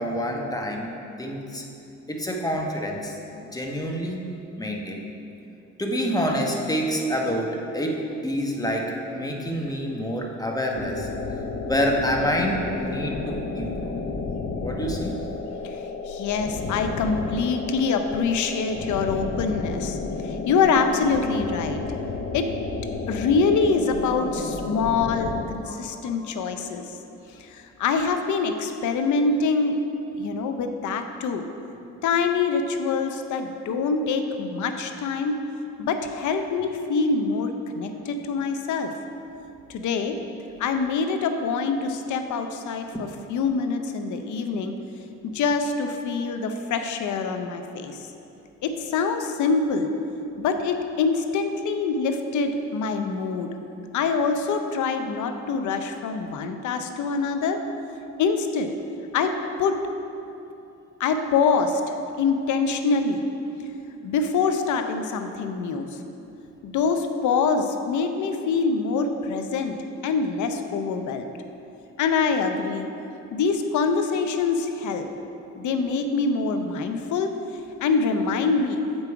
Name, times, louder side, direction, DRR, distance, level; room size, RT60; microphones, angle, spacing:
voice 1, 0.0-1.6 2.1-3.1 3.5-4.2 4.6-5.1 5.8-11.1 11.7-14.0 14.6-15.2 25.7-26.3, equal, 10° left, 0 dB, 1.0 m, -27 dB
sound 1, 10.7-25.4, left 4 dB, 40° left, 0.7 m, -32 dB
voice 2, 16.1-20.0 20.2-21.8 22.3-22.5 23.1-26.8 27.4-29.8 30.2-31.4 32.0-35.4 35.8-37.5 37.8-38.9 39.7-40.2 40.6-44.7 45.2-48.0 48.6-49.9 50.4-53.5 53.9-57.6 58.2-58.7 59.1-59.8 61.0-61.8 62.2-63.2 64.0-65.9 66.6-69.8 70.0-71.3 72.0-72.9 73.3-75.1 75.6-77.3 77.8-78.8, left 4 dB, 75° left, 6 dB, 0.7 m, -25 dB
8.0 x 5.4 x 4.6 m, 2.8 s
cardioid pair, 90°, 30 cm